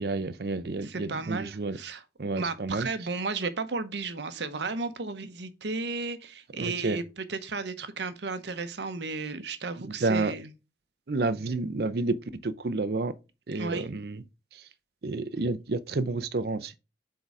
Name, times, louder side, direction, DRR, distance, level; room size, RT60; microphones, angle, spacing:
voice 1, 0.0-1.8 2.2-2.9 6.6-7.0 9.8-10.3 11.1-12.2 12.4-13.1 13.5-14.2 14.5-14.7 15.0-16.7, right 3 dB, 60° right, 0.6 m, -30 dB
voice 2, 0.8-2.0 2.3-7.0 7.3-10.5 13.5-13.9, right 4 dB, 75° right, 0.9 m, -34 dB
8.2 x 3.8 x 4.8 m
head